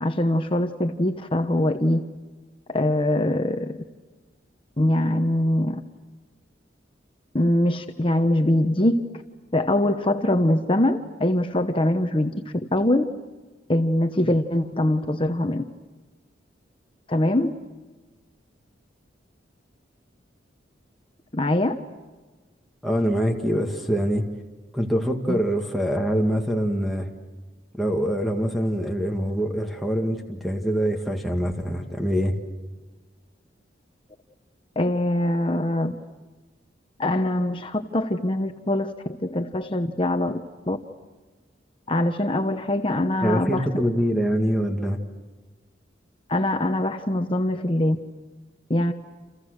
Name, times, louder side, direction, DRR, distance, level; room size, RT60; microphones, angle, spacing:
voice 1, 0.0-2.0 2.7-3.8 4.8-5.8 7.3-9.0 9.5-12.3 12.7-13.0 13.7-15.6 17.1-17.5 21.3-21.8 25.3-25.4 34.8-35.9 37.0-38.9 39.2-40.4 40.7-40.8 41.9-43.7 46.3-48.0 48.7-48.9, left 1 dB, 30° left, 6 dB, 1.1 m, -23 dB
voice 2, 22.8-24.2 24.7-27.1 27.7-32.4 43.2-45.0, equal, ahead, 0 dB, 1.9 m, -24 dB
30.0 x 29.0 x 6.6 m, 1.3 s
head